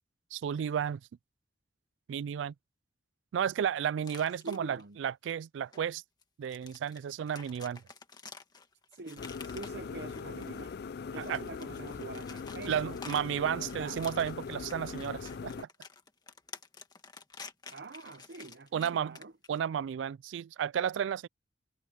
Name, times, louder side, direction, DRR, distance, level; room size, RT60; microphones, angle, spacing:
voice 1, 0.3-1.0 2.1-2.5 3.3-6.0 6.4-7.8 11.2-11.4 12.7-15.7 18.7-19.2 19.5-21.3, right 8 dB, 80° right, 0.3 m, -33 dB
sound 1, 4.0-4.8 5.7-5.8 6.2-10.7 11.1-19.6, left 4 dB, 20° left, 1.7 m, -50 dB
voice 2, 4.4-5.0 8.9-10.8 11.1-13.0 13.6-14.1 17.7-19.3, right 3 dB, 60° right, 0.8 m, -45 dB
sound 2, 9.2-15.6, left 5 dB, 55° left, 0.4 m, -41 dB
head